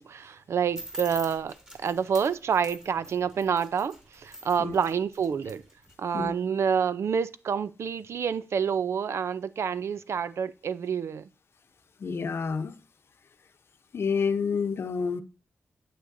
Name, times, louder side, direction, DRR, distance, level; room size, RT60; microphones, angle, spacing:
voice 1, 0.0-1.5 1.8-5.6 6.0-11.2, right 7 dB, 75° right, 0.5 m, -28 dB
sound 1, 0.7-5.9, equal, 15° right, 2.6 m, -43 dB
voice 2, 12.0-12.8 13.9-15.2, left 5 dB, 60° left, 0.8 m, -28 dB
9.1 x 8.4 x 2.6 m
wide cardioid pair, 120°, 5 cm